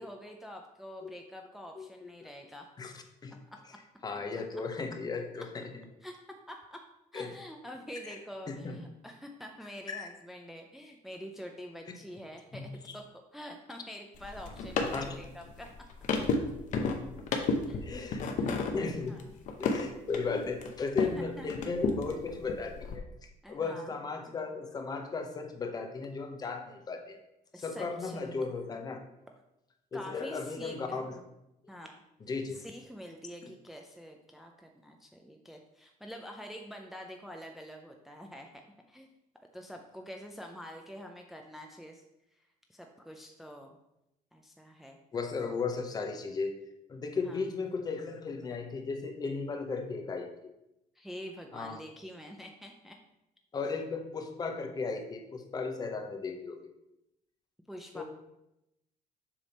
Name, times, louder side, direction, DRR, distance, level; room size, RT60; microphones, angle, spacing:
voice 1, 0.0-2.7 3.5-3.6 6.0-6.2 6.5-6.9 7.1-13.1 13.3-15.7 17.7-17.9 18.2-18.7 19.1-19.2 19.7-19.9 21.2-21.5 23.4-24.0 27.5-28.4 29.9-31.3 31.7-32.0 32.5-38.6 38.9-39.1 39.5-42.0 42.7-43.8 44.3-45.0 47.2-47.4 51.0-53.0 57.7-58.0, equal, ahead, 3 dB, 0.4 m, -46 dB
voice 2, 1.8-2.1 2.8-3.3 4.0-5.8 7.1-7.3 8.1-8.2 8.5-8.8 9.9-10.1 12.5-12.9 14.9-15.2 17.7-19.1 19.6-23.0 23.5-27.2 27.6-29.0 29.9-31.2 32.3-32.6 45.1-46.5 46.9-50.3 51.5-51.8 53.5-56.6 57.9-58.0, left 4 dB, 30° left, 5 dB, 0.8 m, -36 dB
sound 1, 14.1-21.2 21.5-23.0, left 4 dB, 60° left, 0.8 m, -33 dB
7.2 x 3.4 x 5.2 m, 0.88 s
cardioid pair, 155°, 14 cm